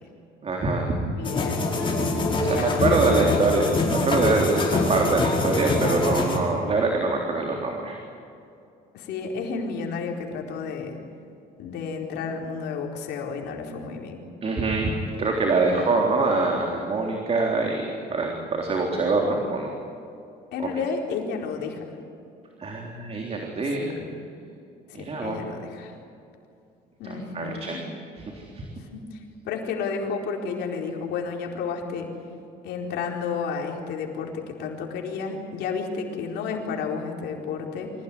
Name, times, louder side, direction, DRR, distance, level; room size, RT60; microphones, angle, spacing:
voice 1, 0.4-1.1 2.4-3.6 3.9-8.0 14.4-19.7 20.6-20.7 22.6-23.9 24.9-25.4 27.0-27.8 28.3-28.6, right 3 dB, 35° right, 1 dB, 3.7 m, -24 dB
voice 2, 1.1-1.6 2.4-3.5 8.9-11.0 11.6-14.2 15.6-15.9 20.5-21.8 23.6-24.1 24.9-25.9 27.0-27.8 28.8-29.2 29.4-32.1 32.6-37.9, left 5 dB, 80° left, 1 dB, 4.4 m, -31 dB
sound 1, 1.2-6.4, left 2 dB, 30° left, 5.2 m, -25 dB
25.0 x 17.0 x 9.8 m, 2.7 s
cardioid pair, 110°, 17 cm